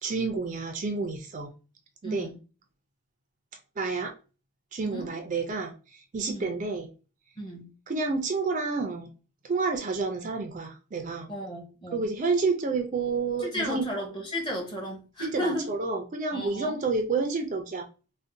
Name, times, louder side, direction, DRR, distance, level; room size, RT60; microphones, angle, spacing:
voice 1, 0.0-1.5 2.0-2.3 3.8-4.1 4.7-6.9 7.9-9.1 9.4-11.3 11.9-13.8 15.2-17.9, right 4 dB, 35° right, 0.3 m, -29 dB
voice 2, 2.0-2.4 4.8-5.1 6.3-6.6 7.4-7.7 11.3-12.1 13.4-15.7 16.3-16.8, equal, 20° left, 0.7 m, -34 dB
2.5 x 2.1 x 3.7 m
head